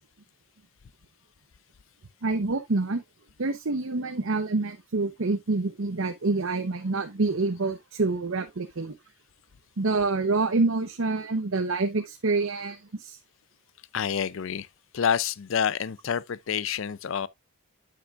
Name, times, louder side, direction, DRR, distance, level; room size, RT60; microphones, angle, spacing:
voice 1, 2.2-3.0 3.4-8.9 9.8-13.2, right 3 dB, 65° right, 0.8 m, -27 dB
voice 2, 13.9-14.7 14.9-17.3, left 7 dB, 60° left, 0.4 m, -28 dB
8.8 x 7.9 x 2.4 m
head